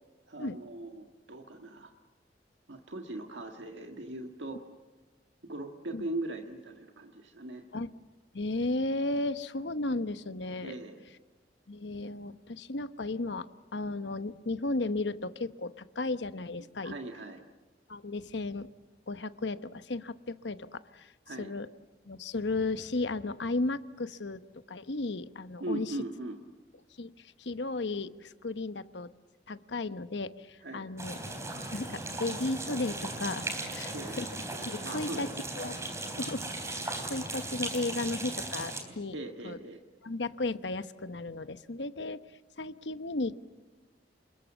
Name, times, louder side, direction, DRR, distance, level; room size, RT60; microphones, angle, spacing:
voice 1, 0.3-1.9 2.7-4.6 5.5-7.6 10.6-11.0 16.8-17.4 21.3-21.5 25.6-26.4 30.6-30.8 33.9-34.2 34.8-35.5 39.1-39.8, right 2 dB, 90° right, 4 dB, 1.7 m, -39 dB
voice 2, 8.3-10.7 11.7-13.5 13.7-16.9 17.9-18.7 19.1-21.1 21.4-21.7 22.1-24.4 24.7-26.0 27.0-29.1 29.5-31.2 31.7-33.4 33.7-34.3 34.6-35.3 35.6-35.8 36.2-36.5 36.8-39.2 39.4-39.6 40.0-42.2 42.6-43.4, left 2 dB, 80° left, 12 dB, 1.0 m, -34 dB
sound 1, 31.0-38.8, right 2 dB, 15° right, 3.6 m, -37 dB
28.5 x 21.5 x 7.3 m, 1.2 s
head